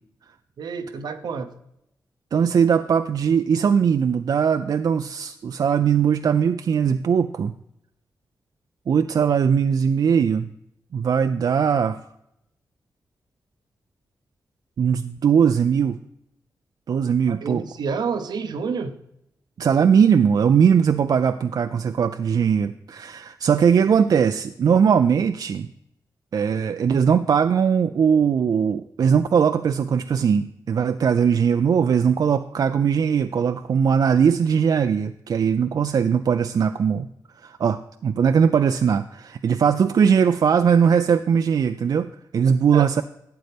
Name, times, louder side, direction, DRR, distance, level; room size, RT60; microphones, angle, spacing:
voice 1, 0.6-1.5 17.3-18.9 42.7-43.0, right 5 dB, 80° right, 8 dB, 0.8 m, -29 dB
voice 2, 2.3-7.5 8.9-10.5 10.9-12.0 14.8-16.0 16.9-17.6 19.6-25.7 26.3-37.1 37.4-43.0, right 7 dB, 60° right, 9 dB, 0.4 m, -20 dB
12.0 x 7.7 x 3.4 m, 0.81 s
cardioid pair, 80°, 7 cm